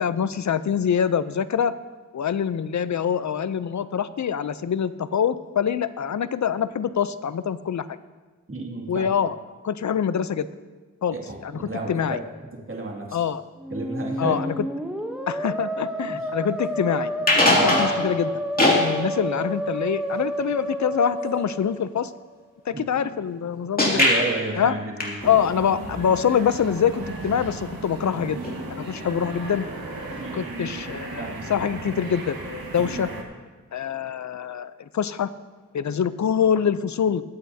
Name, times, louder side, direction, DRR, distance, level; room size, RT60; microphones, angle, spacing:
voice 1, 0.0-1.7 2.1-8.0 8.9-9.4 9.6-10.5 11.0-11.2 11.4-12.2 13.1-13.4 14.2-14.7 15.3-17.1 17.3-18.3 18.6-22.1 22.7-24.1 24.6-24.7 25.2-28.4 28.8-29.7 30.3-32.4 32.7-33.1 33.7-35.3 35.7-37.2, left 8 dB, 55° left, 14 dB, 0.6 m, -25 dB
voice 2, 8.5-9.2 11.1-12.2 12.5-13.2 13.7-14.5 16.0-16.2 17.5-17.8 22.7-23.1 23.9-25.1 30.1-31.5 32.8-33.0, right 2 dB, 35° right, -1 dB, 2.4 m, -32 dB
Musical instrument, 13.6-22.3, equal, 5° right, 0.9 m, -30 dB
sound 1, 17.2-18.1 18.6-18.9 23.8-24.3 25.0-25.4 28.4-28.6 28.8-29.0 30.2-30.3, left 1 dB, 25° left, 2.5 m, -20 dB
sound 2, 25.2-33.2, right 2 dB, 80° right, 1.7 m, -36 dB
21.5 x 8.6 x 2.8 m, 1.3 s
wide cardioid pair, 65°, 35 cm